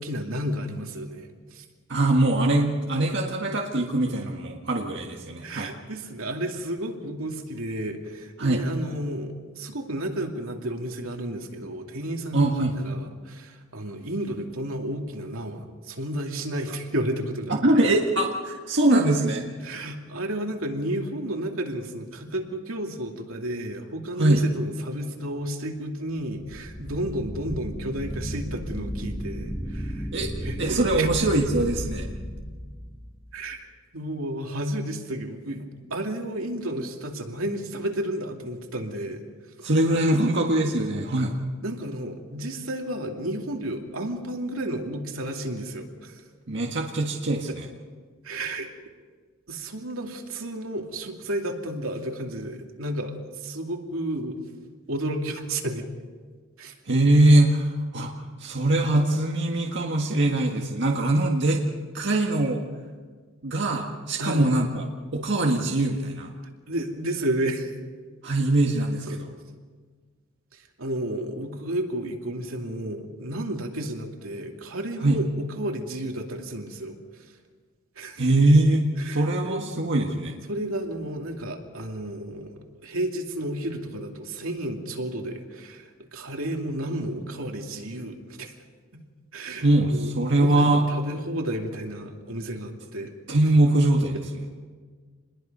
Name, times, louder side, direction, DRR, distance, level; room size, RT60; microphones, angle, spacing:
voice 1, 0.0-1.6 5.4-12.5 12.8-17.9 19.6-30.1 30.4-31.1 33.3-33.7 33.9-39.3 39.6-39.7 41.6-46.2 47.5-47.6 48.2-48.7 49.5-54.4 54.9-55.9 56.6-56.7 64.2-64.5 66.7-67.7 69.1-69.2 70.5-77.3 78.0-78.2 79.0-79.7 80.5-88.5 88.9-89.0 89.3-93.1, right 1 dB, 85° right, 2 dB, 2.6 m, -32 dB
voice 2, 1.9-5.7 8.4-8.6 12.3-12.7 17.6-19.5 24.2-24.4 30.1-30.3 30.6-32.1 39.6-41.3 46.5-47.7 56.9-58.1 58.4-61.6 61.9-62.6 63.4-64.8 65.1-66.3 68.2-69.3 75.0-75.2 78.2-80.3 89.6-90.8 93.3-94.2, right 1 dB, 60° right, 0 dB, 1.7 m, -22 dB
sound 1, 26.2-33.2, equal, 25° left, 5.1 m, -34 dB
27.0 x 21.0 x 5.5 m, 1.5 s
head